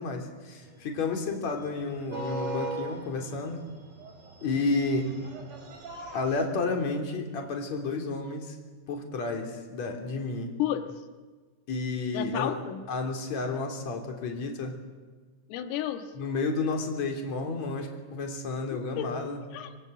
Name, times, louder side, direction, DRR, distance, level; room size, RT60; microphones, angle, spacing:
voice 1, 0.0-3.6 4.4-5.1 6.1-8.6 8.9-10.5 11.7-12.5 12.9-14.7 16.2-19.4, left 3 dB, 40° left, 3 dB, 3.9 m, -31 dB
sound 1, 0.7-6.4, right 2 dB, 30° right, 4.1 m, -39 dB
voice 2, 10.6-11.0 12.1-12.9 15.5-16.1 18.7-19.2 19.5-19.8, left 11 dB, 90° left, 7 dB, 4.3 m, -32 dB
26.0 x 24.5 x 8.0 m, 1.4 s
omnidirectional pair, 5.8 m